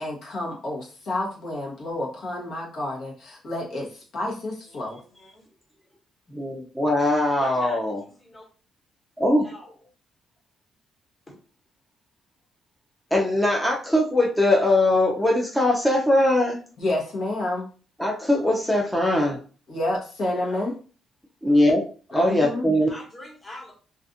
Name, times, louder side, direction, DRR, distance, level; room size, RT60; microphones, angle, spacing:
voice 1, 0.0-5.0 16.8-17.6 19.7-20.7 22.1-22.7, left 1 dB, 65° left, -3 dB, 1.0 m, -29 dB
voice 2, 4.7-5.4 7.4-8.4 9.4-9.7 11.3-11.4 20.3-20.6 22.8-23.7, left 1 dB, 25° left, -1 dB, 1.1 m, -44 dB
voice 3, 6.3-8.0 9.2-9.5 13.1-16.6 18.0-19.4 21.4-21.8 22.1-22.9, left 1 dB, 5° left, -2 dB, 0.5 m, -21 dB
2.4 x 2.3 x 2.6 m, 0.38 s
cardioid pair, 90°, 0 cm